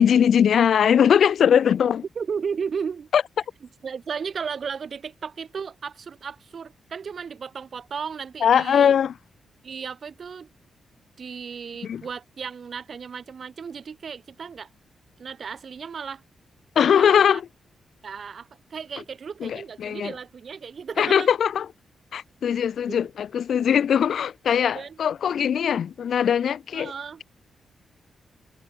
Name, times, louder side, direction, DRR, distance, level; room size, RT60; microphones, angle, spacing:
voice 1, 0.0-2.0 3.1-3.2 8.4-9.1 11.8-12.0 16.8-17.5 19.4-20.1 21.0-21.7 22.1-26.9, left 8 dB, 70° left, 0.4 m, -20 dB
voice 2, 2.2-3.1 3.8-9.0 9.6-10.5 11.2-14.7 15.2-16.2 16.8-17.4 18.0-21.3 22.9-23.0 24.6-25.0 26.7-27.2, right 6 dB, 55° right, 2.1 m, -34 dB
cardioid pair, 95°, 0 cm